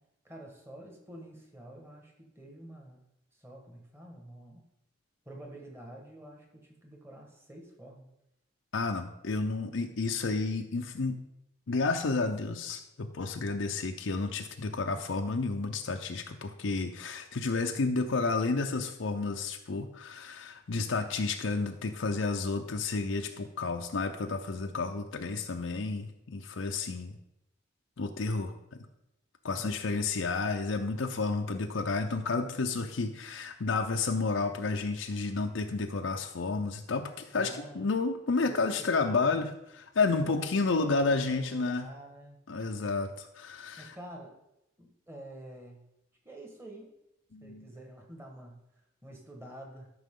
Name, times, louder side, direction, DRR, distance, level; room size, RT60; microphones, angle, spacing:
voice 1, 0.2-3.0 3.3-4.7 5.2-8.1 29.5-29.8 37.3-37.9 38.4-38.7 38.9-39.4 40.3-42.8 43.8-44.4 44.8-45.8 46.2-46.9 47.4-48.6 49.0-49.9, right 1 dB, 10° right, 1 dB, 1.5 m, -48 dB
voice 2, 8.7-11.2 11.7-27.1 28.0-28.5 29.4-41.9 42.5-44.0 47.3-47.7, left 3 dB, 80° left, 4 dB, 0.6 m, -31 dB
13.0 x 5.9 x 3.8 m, 0.85 s
head